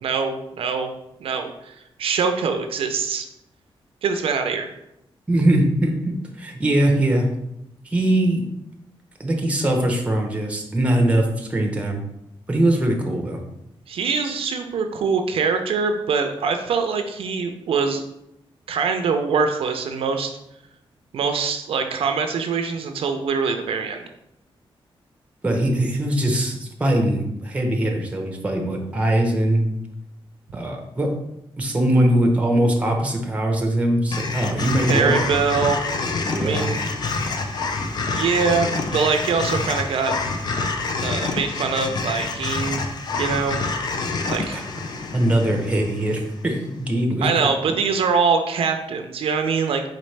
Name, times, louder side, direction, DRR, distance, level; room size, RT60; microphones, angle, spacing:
voice 1, 0.0-0.9 1.2-3.3 4.0-4.7 13.9-18.0 18.7-20.4 21.1-24.0 34.9-35.8 36.4-36.8 38.1-40.1 41.0-42.8 43.2-43.6 44.2-44.6 47.2-49.8, right 5 dB, 75° right, 6 dB, 0.4 m, -23 dB
voice 2, 5.3-7.3 7.8-8.4 9.2-12.0 12.5-13.4 25.4-29.7 30.5-31.1 31.6-35.3 36.2-36.7 44.0-44.2 44.5-44.6 45.1-47.3, right 1 dB, 15° right, 2 dB, 0.7 m, -21 dB
sound 1, 34.1-46.4, left 3 dB, 45° left, 0.4 m, -27 dB
4.1 x 4.1 x 3.2 m, 0.83 s
wide cardioid pair, 170°, 10 cm